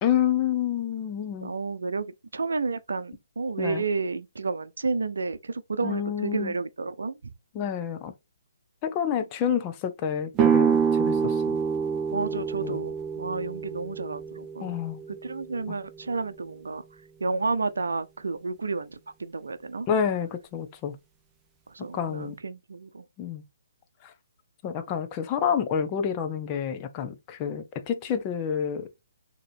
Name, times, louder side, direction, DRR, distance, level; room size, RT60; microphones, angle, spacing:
voice 1, 0.0-1.5 3.6-3.8 5.8-6.5 7.5-8.1 8.8-11.6 12.6-12.8 14.6-15.0 15.7-15.8 19.9-21.0 21.9-22.4 23.2-23.4 24.0-24.1 24.6-28.9, left 8 dB, 25° left, 0.8 m, -28 dB
voice 2, 1.4-7.2 12.1-14.8 15.2-16.8 17.2-19.9 21.7-23.0, right 4 dB, 70° right, 0.6 m, -31 dB
sound 1, 10.4-16.1, right 7 dB, 20° right, 0.8 m, -27 dB
6.6 x 3.0 x 2.6 m
figure-of-eight pair, 135°, 0 cm